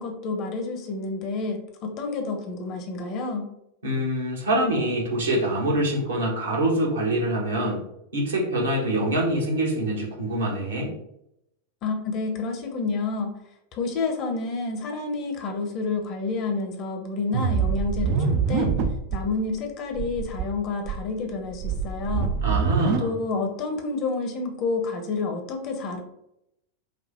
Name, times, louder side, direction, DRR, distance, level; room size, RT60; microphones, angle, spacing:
voice 1, 0.0-3.4 11.8-13.3 13.7-18.7 19.1-22.3 23.0-26.0, left 3 dB, 40° left, 4 dB, 0.9 m, -29 dB
voice 2, 3.8-7.8 8.1-10.9 22.4-23.1, right 1 dB, 70° right, -2 dB, 1.5 m, -25 dB
sound 1, 17.3-19.2 19.5-19.6 19.9-20.4 20.8-23.0, right 5 dB, 45° right, 0.6 m, -25 dB
5.2 x 2.4 x 4.3 m, 0.79 s
figure-of-eight pair, 90°, 0 cm